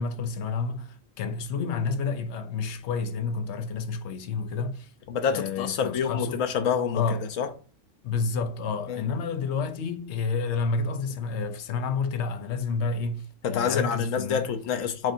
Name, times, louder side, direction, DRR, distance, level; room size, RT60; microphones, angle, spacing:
voice 1, 0.0-4.9 5.3-6.4 6.9-7.3 8.0-14.5, left 4 dB, 70° left, 0.8 m, -30 dB
voice 2, 5.1-7.0 7.4-7.5 8.9-9.0 13.4-15.1, left 7 dB, 85° left, 1.1 m, -27 dB
7.5 x 2.5 x 2.7 m
omnidirectional pair, 1.3 m